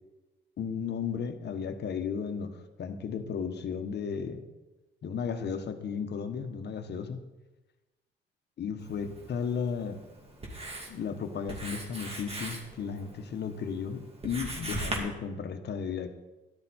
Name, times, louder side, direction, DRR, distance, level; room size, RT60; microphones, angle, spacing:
voice 1, 0.6-4.4 5.0-7.2 8.6-10.0 10.9-16.1, left 6 dB, 60° left, 8 dB, 1.3 m, -34 dB
Writing, 8.8-15.0, right 1 dB, 30° right, 2.8 m, -40 dB
13.0 x 11.0 x 4.4 m, 1.1 s
cardioid pair, 90°, 20 cm